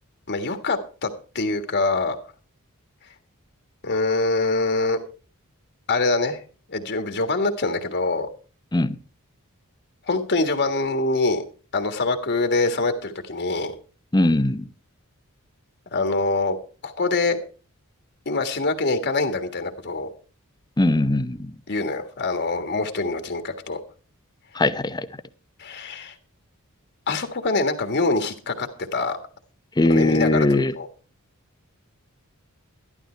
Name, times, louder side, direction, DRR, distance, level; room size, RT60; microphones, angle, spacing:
voice 1, 0.3-1.1 1.3-2.2 3.8-5.0 5.9-6.4 6.7-8.3 10.0-11.5 11.7-13.7 15.9-16.6 16.8-17.4 18.2-20.1 21.7-23.8 25.6-26.1 27.1-29.2 29.9-30.5 30.8-30.9, left 3 dB, 50° left, 7 dB, 1.6 m, -24 dB
voice 2, 14.1-14.7 20.8-21.5 24.5-25.1 29.8-30.7, left 2 dB, 20° left, 11 dB, 0.8 m, -20 dB
12.5 x 12.0 x 4.5 m, 0.37 s
head